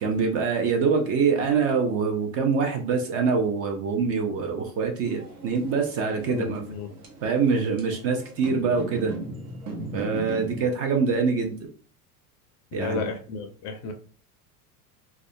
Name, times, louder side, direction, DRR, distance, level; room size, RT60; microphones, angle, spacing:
voice 1, 0.0-6.6 7.2-9.1 9.9-11.7 12.7-13.1, right 5 dB, 35° right, 3 dB, 0.4 m, -24 dB
sound 1, 5.0-10.7, right 2 dB, 80° right, 1.0 m, -38 dB
voice 2, 6.3-6.9 12.7-13.9, left 4 dB, 40° left, 5 dB, 0.4 m, -32 dB
2.3 x 2.1 x 2.6 m, 0.42 s
supercardioid pair, 115°, 45 cm